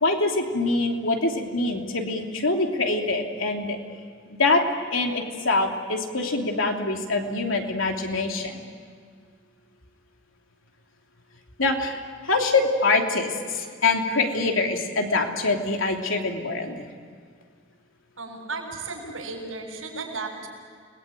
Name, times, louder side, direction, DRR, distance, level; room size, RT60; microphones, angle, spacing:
voice 1, 0.0-3.8 4.3-4.6 4.9-8.7 11.6-16.9, left 3 dB, 80° left, 2 dB, 3.1 m, -24 dB
voice 2, 18.2-20.5, right 3 dB, 90° right, 1 dB, 7.2 m, -34 dB
29.5 x 20.5 x 9.1 m, 2.1 s
head